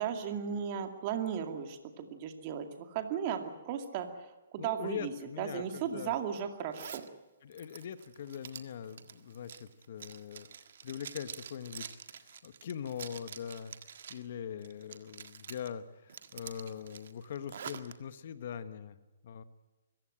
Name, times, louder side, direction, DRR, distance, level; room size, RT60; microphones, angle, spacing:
voice 1, 0.0-7.1, right 8 dB, 35° right, 6 dB, 2.3 m, -36 dB
voice 2, 4.6-6.2 7.4-10.5 10.8-12.0 12.4-13.7 14.1-19.0 19.2-19.4, left 8 dB, 55° left, 12 dB, 1.3 m, -42 dB
Zipper (clothing), 6.7-7.1 7.5-14.3 14.6-15.7 16.1-17.9, right 7 dB, 65° right, 1.7 m, -47 dB
24.5 x 15.5 x 9.0 m, 1.1 s
hypercardioid pair, 150°, 0 cm